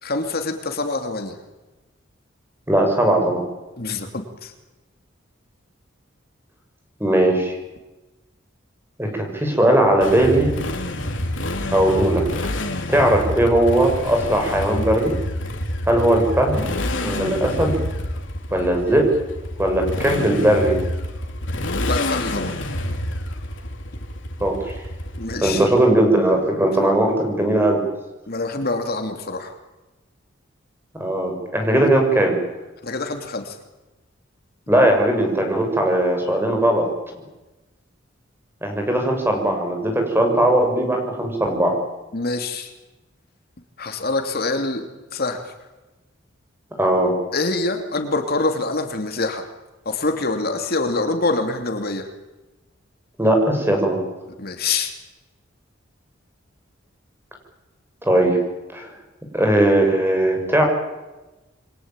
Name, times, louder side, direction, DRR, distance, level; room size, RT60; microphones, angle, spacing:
voice 1, 0.0-1.4 3.8-4.5 21.8-22.6 25.2-25.7 28.3-29.5 32.8-33.6 42.1-42.7 43.8-44.8 45.1-45.4 47.3-49.4 49.8-52.1 54.4-54.9, left 3 dB, 50° left, 5 dB, 2.8 m, -25 dB
voice 2, 2.7-3.4 7.0-7.6 9.0-10.5 11.7-12.2 12.9-15.1 15.9-16.6 17.0-17.8 18.5-19.1 19.6-20.7 24.4-24.7 25.4-27.8 31.0-32.3 34.7-36.9 38.6-41.8 46.8-47.1 53.2-54.0 58.1-58.4 58.7-58.9 59.3-60.6, right 1 dB, 10° right, 3 dB, 6.4 m, -18 dB
Motorcycle, 10.0-25.8, left 1 dB, 70° left, 3.5 m, -28 dB
28.0 x 23.0 x 9.0 m, 1.1 s
head